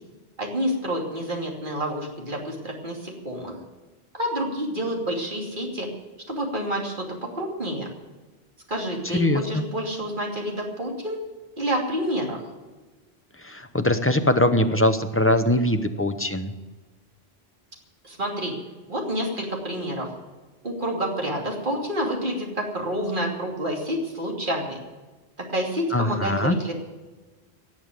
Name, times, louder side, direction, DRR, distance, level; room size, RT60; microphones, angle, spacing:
voice 1, 0.4-3.6 4.1-5.9 6.3-7.9 8.7-11.2 11.6-12.4 18.0-18.6 18.9-20.1 20.6-24.8 25.4-26.7, equal, 50° right, 0 dB, 2.9 m, -28 dB
voice 2, 9.1-9.6 13.4-16.5 25.9-26.6, left 1 dB, 15° left, 8 dB, 0.8 m, -22 dB
18.0 x 7.1 x 9.1 m, 1.3 s
omnidirectional pair, 1.1 m